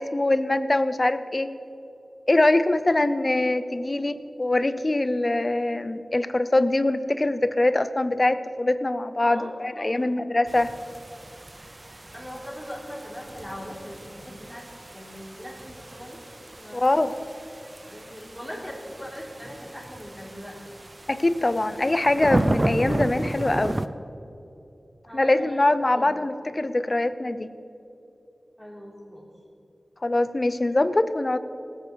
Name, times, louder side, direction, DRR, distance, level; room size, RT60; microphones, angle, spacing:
voice 1, 0.0-1.5 2.3-10.7 16.7-17.1 21.1-23.8 25.1-27.5 30.0-31.4, left 2 dB, 35° left, 12 dB, 0.6 m, -23 dB
voice 2, 9.3-10.0 12.1-14.6 14.9-16.2 16.5-17.1 17.8-20.6 25.1-25.6 25.9-26.1 26.4-26.5 28.6-29.3, equal, 5° left, -3 dB, 3.6 m, -40 dB
sound 1, 10.5-23.9, right 1 dB, 30° right, 0.5 m, -33 dB
18.5 x 8.1 x 5.3 m, 2.8 s
wide cardioid pair, 60°, 0 cm